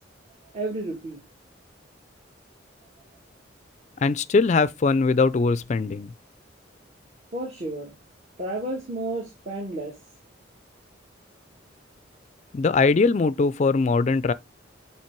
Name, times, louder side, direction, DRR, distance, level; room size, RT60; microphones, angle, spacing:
voice 1, 0.5-1.2 7.3-7.9 8.4-9.9, right 2 dB, 35° right, 1.6 m, -31 dB
voice 2, 4.0-6.1 12.5-14.3, left 4 dB, 35° left, 0.3 m, -21 dB
7.4 x 3.3 x 4.5 m
head